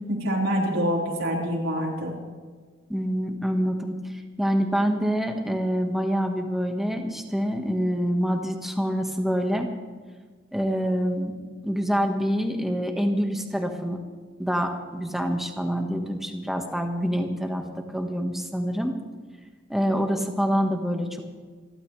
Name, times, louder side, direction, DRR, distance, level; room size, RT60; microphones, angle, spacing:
voice 1, 0.1-2.1, equal, 80° right, -3 dB, 4.5 m, -26 dB
voice 2, 2.9-4.0 4.4-9.7 10.5-11.3 11.6-14.0 14.4-18.9 19.7-21.2, equal, ahead, 3 dB, 1.5 m, -26 dB
27.5 x 12.5 x 3.3 m, 1.5 s
head